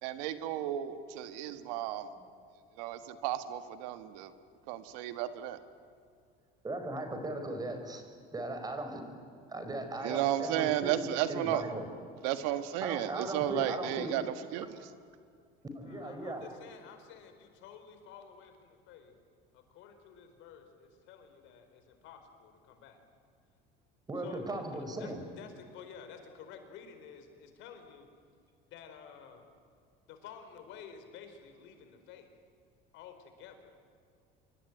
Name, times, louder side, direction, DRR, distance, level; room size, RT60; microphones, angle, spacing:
voice 1, 0.0-2.1 2.8-4.3 4.7-5.6 10.0-11.6 12.2-14.9, right 12 dB, 85° right, 10 dB, 1.7 m, -33 dB
voice 2, 6.6-8.0 8.3-9.0 9.5-11.9 12.8-14.2 15.7-16.4 24.1-25.2, right 1 dB, 20° right, 7 dB, 4.8 m, -38 dB
voice 3, 15.8-19.1 19.5-23.0 24.2-24.5 24.8-28.1 28.7-29.4 30.1-32.3 32.9-33.8, left 7 dB, 65° left, 7 dB, 4.5 m, -51 dB
26.5 x 23.0 x 9.3 m, 2.2 s
supercardioid pair, 115°, 21 cm